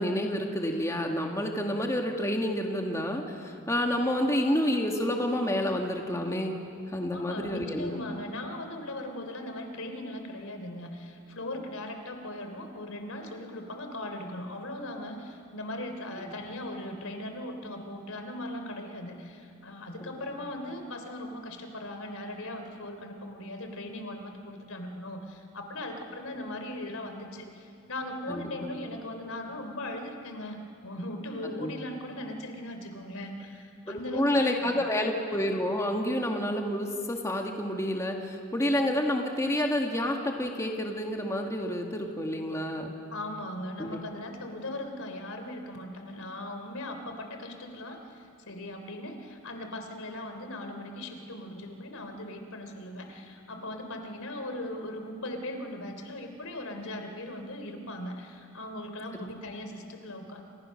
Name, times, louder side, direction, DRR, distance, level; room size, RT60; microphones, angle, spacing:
voice 1, 0.0-6.6 6.9-8.0 16.2-16.3 20.0-20.1 28.3-28.7 31.6-31.7 34.1-42.9 43.8-44.0 59.1-59.3, left 1 dB, 15° left, 1 dB, 1.9 m, -29 dB
voice 2, 7.1-34.7 43.1-60.4, left 1 dB, 85° left, 5 dB, 3.4 m, -39 dB
29.0 x 27.5 x 6.6 m, 2.5 s
head